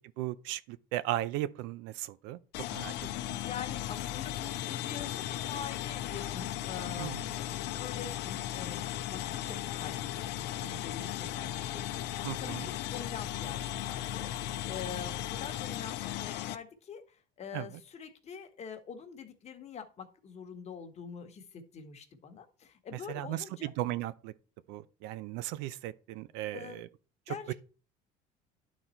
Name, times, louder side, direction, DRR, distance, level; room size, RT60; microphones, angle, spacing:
voice 1, 0.2-2.4 2.7-2.9 3.3-3.4 7.0-7.3 12.2-12.7 17.5-17.7 22.9-24.3 24.7-26.9 27.3-27.5, right 15 dB, 80° right, 0.6 m, -36 dB
sound 1, 2.5-16.6, left 13 dB, 65° left, 0.7 m, -36 dB
voice 2, 3.4-23.7 26.5-26.8 27.3-27.5, left 7 dB, 35° left, 1.4 m, -45 dB
11.0 x 4.2 x 4.4 m
cardioid pair, 125°, 19 cm